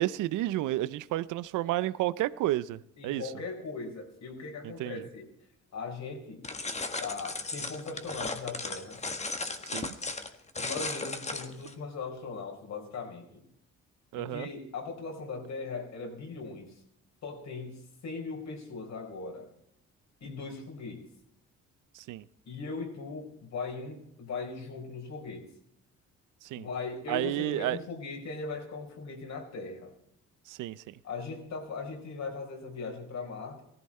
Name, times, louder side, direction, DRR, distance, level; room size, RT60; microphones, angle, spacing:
voice 1, 0.0-3.2 4.6-5.0 9.7-10.0 14.1-14.5 21.9-22.2 26.4-26.7 27.1-27.8 30.5-30.9, right 15 dB, 90° right, 0.6 m, -31 dB
voice 2, 3.0-5.2 5.7-6.5 7.0-9.0 10.6-13.2 14.1-16.7 17.2-19.5 20.2-21.0 22.5-25.5 26.6-29.9 31.0-33.6, left 4 dB, 65° left, 4.7 m, -39 dB
sound 1, 6.4-11.7, left 3 dB, 20° left, 1.6 m, -36 dB
16.5 x 15.0 x 4.3 m
cardioid pair, 90°, 30 cm